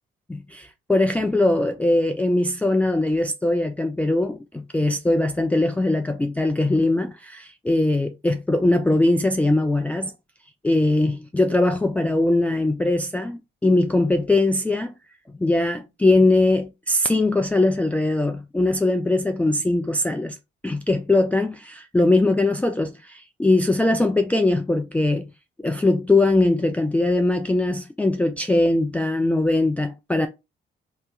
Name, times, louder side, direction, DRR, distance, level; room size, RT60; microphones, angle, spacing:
voice 1, 0.3-10.1 10.6-14.9 15.4-20.4 20.6-25.3 25.6-30.3, left 2 dB, 5° left, 0.4 m, -21 dB
3.3 x 2.8 x 2.4 m
cardioid pair, 90°, 20 cm